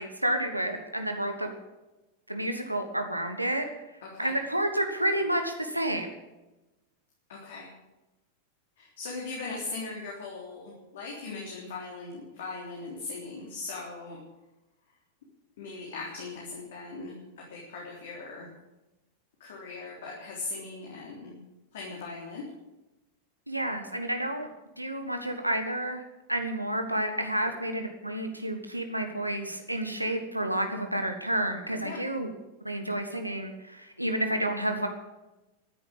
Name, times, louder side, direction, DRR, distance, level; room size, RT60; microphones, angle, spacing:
voice 1, 0.0-1.5 2.3-3.6 4.2-6.1 23.5-24.5 24.8-26.0 26.3-32.3 32.6-34.9, right 1 dB, 90° right, 5 dB, 1.4 m, -30 dB
voice 2, 4.0-4.3 7.3-7.7 8.8-14.2 15.6-18.5 19.4-21.4 21.7-22.4 31.8-32.0, left 3 dB, 60° left, -3 dB, 3.5 m, -39 dB
13.5 x 10.0 x 8.8 m, 1.0 s
figure-of-eight pair, 90°, 0 cm